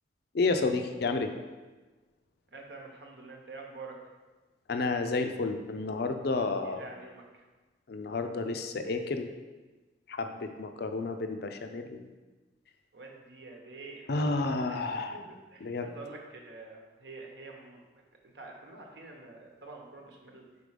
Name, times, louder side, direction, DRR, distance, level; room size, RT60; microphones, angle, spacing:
voice 1, 0.3-1.3 4.7-6.8 7.9-9.3 10.1-12.0 14.1-15.2 15.6-15.9, left 3 dB, 60° left, 7 dB, 0.5 m, -31 dB
voice 2, 2.5-4.0 6.6-7.4 10.4-10.6 12.9-17.8 18.2-20.4, right 3 dB, 70° right, 0 dB, 1.0 m, -47 dB
5.2 x 4.2 x 5.0 m, 1.3 s
head